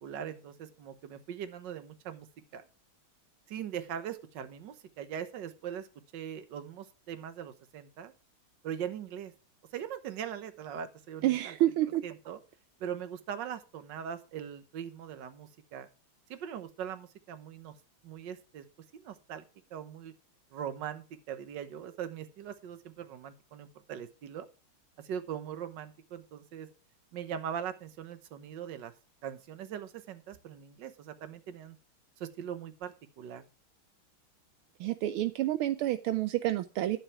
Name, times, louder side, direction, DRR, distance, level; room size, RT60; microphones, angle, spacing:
voice 1, 0.0-2.3 2.5-2.6 3.5-5.9 6.1-8.1 8.6-9.3 9.7-11.6 12.0-12.4 12.8-15.9 16.3-17.7 18.0-18.6 18.9-19.4 19.7-20.1 20.5-24.5 25.0-26.7 27.1-28.9 29.2-31.8 32.2-33.4, right 9 dB, 60° right, 11 dB, 1.6 m, -41 dB
voice 2, 11.2-12.0 34.8-37.0, right 14 dB, 80° right, 11 dB, 1.5 m, -29 dB
11.5 x 7.5 x 4.7 m, 0.33 s
omnidirectional pair, 2.4 m